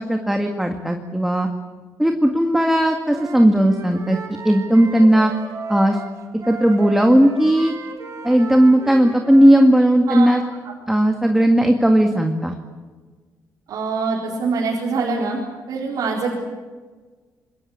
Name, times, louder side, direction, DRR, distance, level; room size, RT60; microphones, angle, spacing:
voice 1, 0.0-1.5 2.0-4.2 4.4-5.3 5.7-6.0 6.5-7.7 8.2-10.4 10.9-12.5, right 1 dB, 5° right, 4 dB, 1.9 m, -16 dB
Wind instrument woodwind instrument, 3.1-9.7, right 4 dB, 50° right, 5.9 m, -35 dB
voice 2, 13.7-15.4 15.7-16.3, right 4 dB, 75° right, -3 dB, 4.5 m, -24 dB
26.5 x 21.0 x 8.6 m, 1.4 s
cardioid pair, 105°, 7 cm